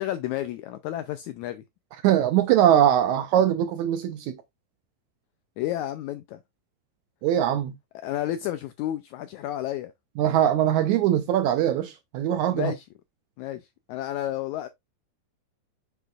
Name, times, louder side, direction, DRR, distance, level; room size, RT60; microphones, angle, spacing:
voice 1, 0.0-1.6 5.6-6.4 7.9-9.9 12.5-12.8 13.4-14.7, left 13 dB, 85° left, 1.7 m, -31 dB
voice 2, 2.0-4.4 7.2-7.7 10.2-12.7, right 11 dB, 80° right, 1.7 m, -21 dB
7.2 x 6.1 x 2.4 m
omnidirectional pair, 3.9 m